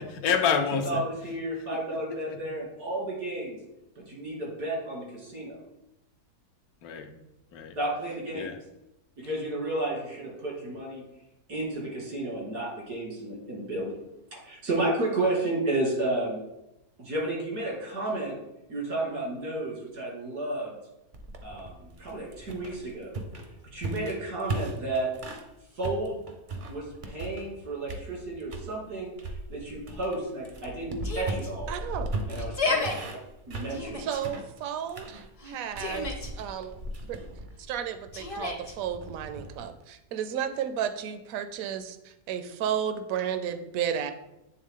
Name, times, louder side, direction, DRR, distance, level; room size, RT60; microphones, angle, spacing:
voice 1, 0.0-1.0 1.7-2.4 6.8-7.1 7.5-7.8 8.3-8.6, left 6 dB, 75° left, 6 dB, 1.1 m, -29 dB
voice 2, 0.8-3.6 4.1-5.6 7.8-8.5 9.2-11.0 11.5-13.9 14.3-16.4 17.0-18.3 18.7-20.8 21.4-23.1 23.7-25.1 25.8-26.2 26.7-29.1 29.5-31.7 32.3-32.8 33.5-34.1, right 2 dB, 90° right, -3 dB, 2.8 m, -32 dB
sound 1, 21.1-25.5 25.8-27.6 27.9-28.7 29.2-39.7, right 2 dB, 50° right, 0.6 m, -38 dB
Yell, 31.0-31.5 32.4-32.9 33.7-34.2 35.4-36.3 38.1-38.7, left 3 dB, 35° left, 0.6 m, -31 dB
voice 3, 31.7-32.2 34.0-36.8 37.1-37.2 37.7-44.1, right 9 dB, 70° right, 9 dB, 0.9 m, -33 dB
8.8 x 3.5 x 3.6 m, 0.90 s
omnidirectional pair, 1.7 m